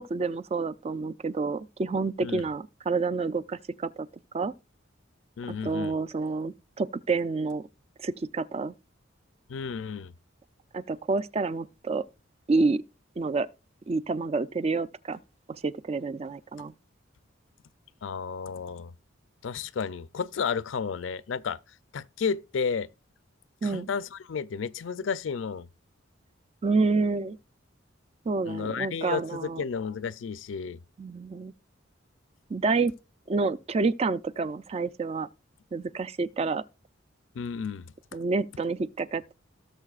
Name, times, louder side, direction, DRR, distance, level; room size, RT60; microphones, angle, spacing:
voice 1, 0.0-4.1 4.3-4.5 5.5-7.6 8.0-8.7 10.7-12.0 12.5-12.8 13.2-13.5 13.9-15.2 15.5-16.7 23.6-23.9 26.6-27.4 28.3-29.6 31.0-31.5 32.5-32.9 33.3-35.3 35.7-36.6 38.1-39.3, right 3 dB, 30° right, 0.4 m, -28 dB
voice 2, 5.4-6.0 9.5-10.1 18.0-18.9 19.4-22.9 23.6-25.7 28.5-30.8 37.3-37.9, left 6 dB, 70° left, 0.4 m, -32 dB
17.5 x 6.5 x 2.4 m
head